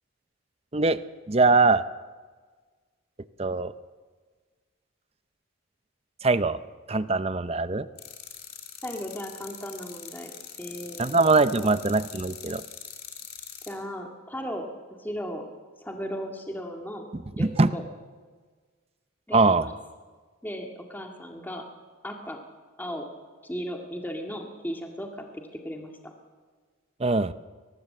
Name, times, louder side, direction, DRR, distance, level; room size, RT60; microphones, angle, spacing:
voice 1, 1.3-1.8 3.4-3.7 6.2-6.6 6.9-7.9 11.0-12.6 17.4-17.7 19.3-19.7 27.0-27.3, right 3 dB, 30° right, 13 dB, 0.6 m, -22 dB
sound 1, 8.0-13.7, left 8 dB, 45° left, 3.3 m, -43 dB
voice 2, 8.8-10.3 10.6-11.2 11.6-11.7 13.7-15.5 15.8-17.8 19.3-19.7 20.4-21.6 22.0-22.4 22.8-23.1 23.4-26.1, equal, 10° left, 2 dB, 2.0 m, -36 dB
23.0 x 19.5 x 7.7 m, 1.5 s
head